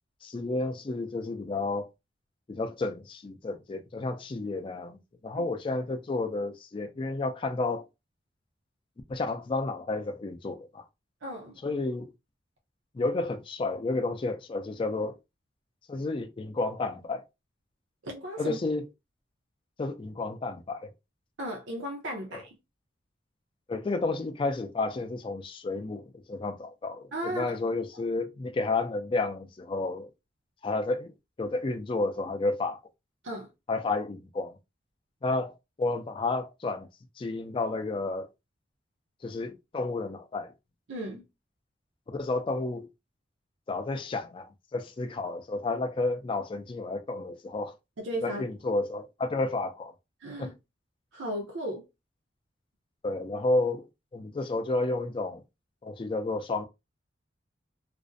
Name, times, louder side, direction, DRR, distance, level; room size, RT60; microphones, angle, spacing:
voice 1, 0.2-1.9 2.5-7.9 9.1-10.8 11.6-12.1 12.9-15.2 15.9-17.2 18.4-18.8 19.8-20.9 22.3-22.4 23.7-30.1 30.6-31.1 31.4-32.8 33.7-34.6 35.2-36.9 37.2-38.3 39.2-40.5 42.1-42.9 43.7-47.7 48.2-49.9 50.4-50.5 53.0-53.9 54.1-55.4 55.8-56.6, left 3 dB, 30° left, 0.3 m, -31 dB
voice 2, 11.2-11.6 18.0-18.6 21.4-22.6 27.1-27.6 33.2-33.5 40.9-41.2 48.0-48.4 50.2-50.5 51.1-51.9, right 1 dB, 85° right, 0.6 m, -35 dB
2.4 x 2.0 x 2.5 m
head